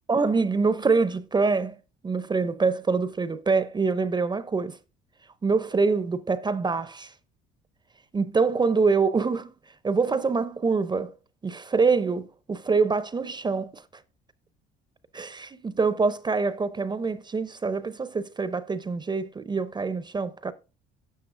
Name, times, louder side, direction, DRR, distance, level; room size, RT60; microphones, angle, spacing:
voice 1, 0.1-1.8 2.0-4.8 5.4-7.1 8.1-9.5 9.8-11.1 11.4-13.8 15.1-20.5, right 4 dB, 20° right, 0.6 m, -25 dB
12.0 x 7.4 x 2.5 m
supercardioid pair, 85°, 20 cm